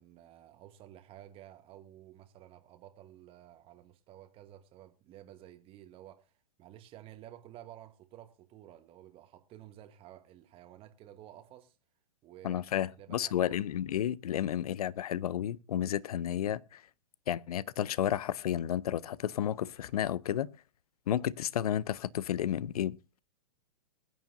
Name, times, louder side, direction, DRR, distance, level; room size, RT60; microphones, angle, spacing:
voice 1, 0.0-6.3 6.6-11.8 12.2-13.5, right 12 dB, 30° right, 1.2 m, -53 dB
voice 2, 12.4-16.8 17.3-20.5 21.1-23.2, left 10 dB, 70° left, 0.6 m, -32 dB
22.0 x 9.3 x 2.6 m
hypercardioid pair, 120°, 20 cm